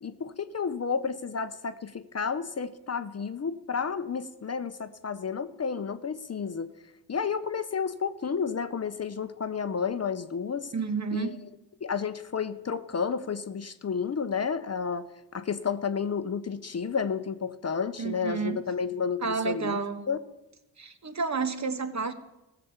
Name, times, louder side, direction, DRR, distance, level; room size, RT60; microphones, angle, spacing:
voice 1, 0.0-6.7 7.1-10.7 11.1-11.4 11.8-19.8 20.1-20.2, left 6 dB, 35° left, 11 dB, 0.7 m, -31 dB
voice 2, 10.7-11.4 18.0-18.6 19.2-20.1 20.8-22.1, right 5 dB, 40° right, 10 dB, 1.2 m, -30 dB
15.0 x 6.8 x 7.1 m, 0.98 s
cardioid pair, 55°, 43 cm